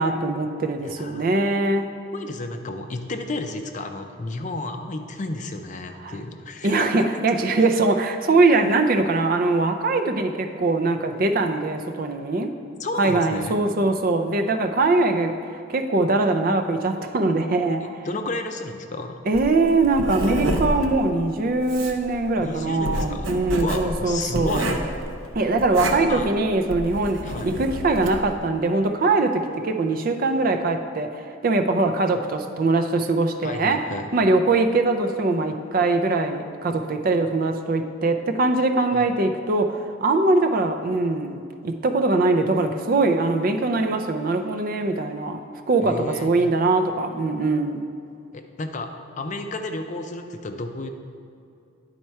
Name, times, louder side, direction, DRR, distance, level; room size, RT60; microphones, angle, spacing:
voice 1, 0.0-1.9 6.0-6.1 6.6-12.5 13.0-15.3 15.7-18.1 19.3-24.6 25.3-33.9 34.1-45.4 45.7-47.8, right 2 dB, 45° right, 6 dB, 0.5 m, -22 dB
voice 2, 0.8-1.4 2.1-7.2 12.8-13.6 18.0-19.2 22.4-24.7 26.0-26.3 27.2-27.5 33.4-34.1 38.9-39.0 45.8-46.3 48.3-50.9, left 2 dB, 40° left, 6 dB, 0.5 m, -32 dB
Writing, 19.3-28.3, right 1 dB, 80° right, 0.8 m, -29 dB
10.5 x 4.3 x 4.6 m, 2.5 s
head